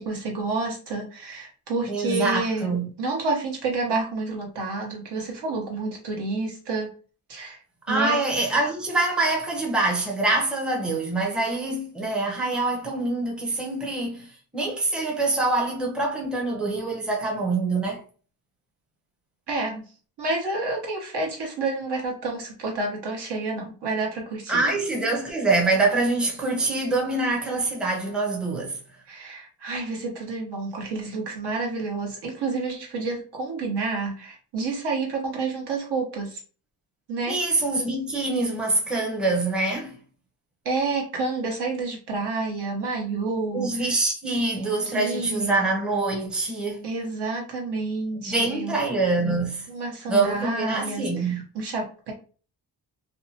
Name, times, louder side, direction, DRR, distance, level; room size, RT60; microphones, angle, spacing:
voice 1, 0.0-2.7 3.0-6.9 7.3-7.6 7.9-8.2 19.5-19.8 20.2-24.6 29.1-36.4 37.1-37.4 40.6-43.7 44.9-45.6 46.8-48.8 49.7-52.1, right 3 dB, 70° right, 1.1 m, -29 dB
voice 2, 1.9-2.9 7.9-18.0 24.5-28.8 37.3-40.0 43.5-46.9 48.3-49.7 50.1-51.4, right 2 dB, ahead, 0.6 m, -25 dB
2.6 x 2.2 x 2.7 m
wide cardioid pair, 125°, 41 cm